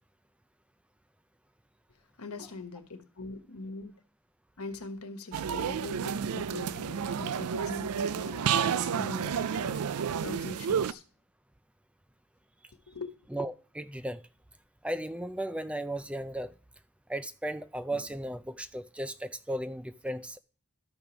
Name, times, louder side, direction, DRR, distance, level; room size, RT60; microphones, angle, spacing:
voice 1, 2.2-3.9 4.6-11.0 12.9-13.1, left 3 dB, 90° left, 1.3 m, -42 dB
sound 1, 5.3-10.9, right 7 dB, 90° right, 0.4 m, -30 dB
voice 2, 13.3-14.2 14.8-16.5 17.1-20.4, right 1 dB, 5° right, 0.4 m, -35 dB
12.5 x 5.2 x 5.9 m
head